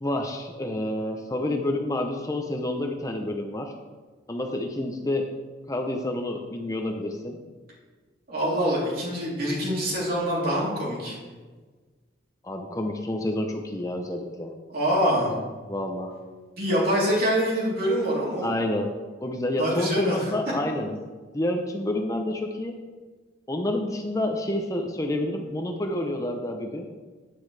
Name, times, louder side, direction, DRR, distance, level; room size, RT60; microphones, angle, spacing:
voice 1, 0.0-3.7 4.3-5.3 5.7-7.4 12.4-14.5 15.7-16.2 18.4-18.9 19.2-21.0 21.3-22.8 23.5-26.9, left 1 dB, 15° left, 3 dB, 0.6 m, -29 dB
voice 2, 8.3-11.2 14.7-15.4 16.6-18.5 19.6-20.3, equal, 50° right, -5 dB, 3.4 m, -25 dB
9.9 x 9.5 x 3.3 m, 1.4 s
head